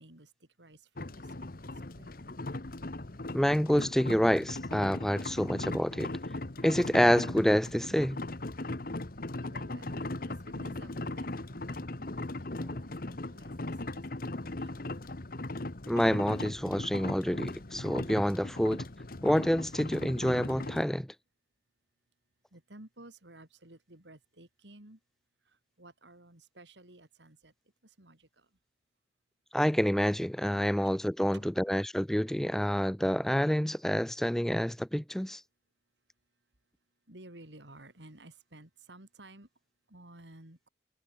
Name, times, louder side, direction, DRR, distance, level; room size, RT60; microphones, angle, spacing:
voice 1, 0.0-2.4 8.6-12.9 13.3-14.3 14.6-14.8 22.5-25.0 25.4-27.5 27.8-28.5 30.8-30.9 31.3-31.5 37.1-39.5 39.9-40.7, right 1 dB, 80° right, 4.3 m, -55 dB
sound 1, 1.0-20.8, left 2 dB, 55° left, 1.4 m, -38 dB
voice 2, 3.3-6.1 6.6-8.2 12.6-12.8 15.9-18.8 19.2-21.1 29.5-35.4, equal, ahead, 0.4 m, -28 dB
head